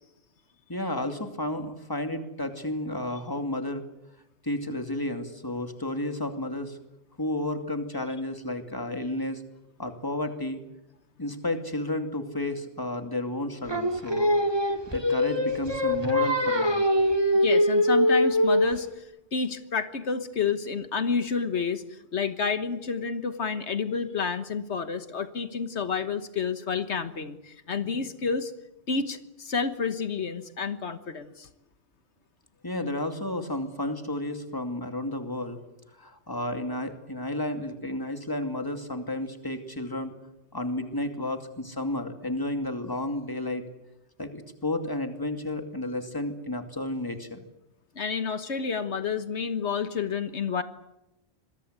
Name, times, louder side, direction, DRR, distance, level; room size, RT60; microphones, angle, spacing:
voice 1, 0.7-3.8 4.4-6.8 7.2-9.4 9.8-10.6 11.2-14.3 14.9-16.8 32.6-35.6 36.0-40.1 40.5-43.6 44.2-47.4, left 1 dB, 20° left, 6 dB, 2.6 m, -32 dB
Singing, 13.7-18.9, equal, 20° right, 2.2 m, -23 dB
voice 2, 17.4-19.0 19.3-28.5 28.9-31.5 47.9-50.6, left 5 dB, 80° left, 10 dB, 1.6 m, -29 dB
26.5 x 22.5 x 8.2 m, 0.91 s
omnidirectional pair, 1.1 m